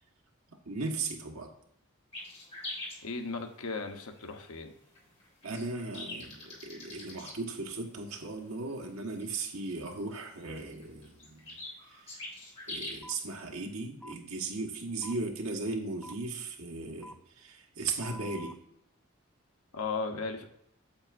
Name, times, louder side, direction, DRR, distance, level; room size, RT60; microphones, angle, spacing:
voice 1, 0.5-1.5 5.4-11.6 11.9-12.3 12.7-18.6, right 3 dB, 80° right, 2 dB, 1.3 m, -37 dB
sound 1, 2.1-13.6, left 2 dB, 30° left, 2.8 m, -45 dB
voice 2, 3.0-4.7 19.7-20.5, left 4 dB, 85° left, 5 dB, 1.0 m, -36 dB
sound 2, 13.0-13.2 14.0-14.2 15.0-15.1 16.0-16.1 17.0-17.1 18.0-18.5, equal, 5° left, 0.3 m, -46 dB
8.7 x 7.9 x 2.5 m, 0.74 s
head